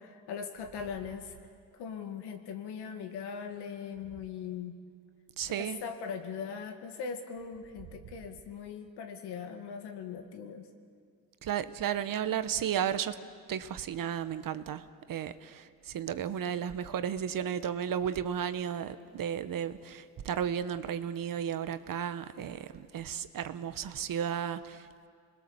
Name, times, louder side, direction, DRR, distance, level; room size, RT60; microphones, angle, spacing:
voice 1, 0.0-1.3 1.7-4.8 5.5-10.7, left 6 dB, 80° left, 5 dB, 2.2 m, -40 dB
voice 2, 5.4-5.8 11.4-13.2 13.5-25.1, right 9 dB, 55° right, 12 dB, 1.1 m, -34 dB
27.0 x 21.0 x 7.2 m, 2.1 s
cardioid pair, 95°, 39 cm